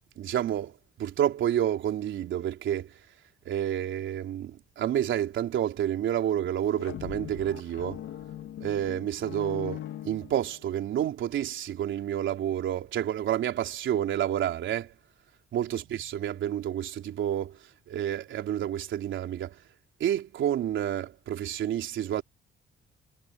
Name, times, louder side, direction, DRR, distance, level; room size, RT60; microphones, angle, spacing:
voice 1, 0.2-3.0 3.5-8.0 8.6-14.9 15.5-19.6 20.0-22.2, right 11 dB, 75° right, 3.6 m, -29 dB
sound 1, 6.6-10.8, left 12 dB, 80° left, 2.0 m, -41 dB
cardioid pair, 90°, 20 cm